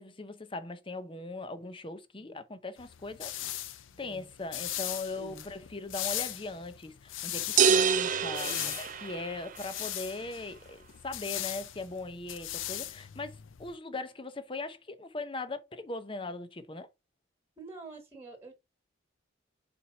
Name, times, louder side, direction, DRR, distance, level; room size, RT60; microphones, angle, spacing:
voice 1, 0.0-3.3 4.0-16.9, left 3 dB, 25° left, 0.7 m, -40 dB
sound 1, 2.8-13.8, left 13 dB, 80° left, 0.5 m, -39 dB
voice 2, 3.9-4.3 5.2-5.4 8.4-8.7 17.6-18.5, right 3 dB, 10° right, 1.6 m, -47 dB
sound 2, 7.6-9.6, right 7 dB, 40° right, 0.5 m, -26 dB
4.4 x 4.3 x 5.2 m
head